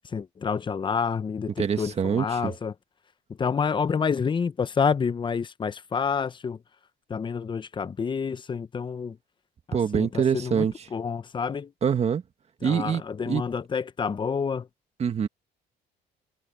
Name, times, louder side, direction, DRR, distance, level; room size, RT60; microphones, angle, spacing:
voice 1, 0.1-2.7 3.4-6.6 7.1-9.2 9.7-10.7 10.9-11.7 12.6-14.7, left 6 dB, 30° left, 0.8 m, -28 dB
voice 2, 1.6-2.5 9.7-10.9 11.8-12.2 12.6-13.4 15.0-15.3, right 7 dB, 40° right, 1.8 m, -25 dB
cardioid pair, 110°, 17 cm